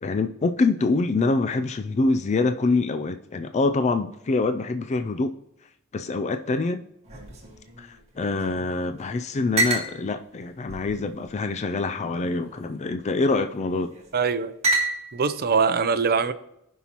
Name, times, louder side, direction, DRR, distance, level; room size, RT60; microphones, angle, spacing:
voice 1, 0.0-5.4 5.9-6.8 7.8-13.9, left 3 dB, 30° left, 8 dB, 0.4 m, -25 dB
sound 1, 7.0-8.7 9.0-9.1 9.6-9.9 10.7-11.5 12.4-12.8 13.7-14.1 14.6-15.3, right 2 dB, 30° right, 1.7 m, -29 dB
voice 2, 14.1-14.5 15.1-16.3, right 5 dB, 45° right, 11 dB, 0.6 m, -22 dB
15.5 x 5.5 x 3.0 m, 0.82 s
head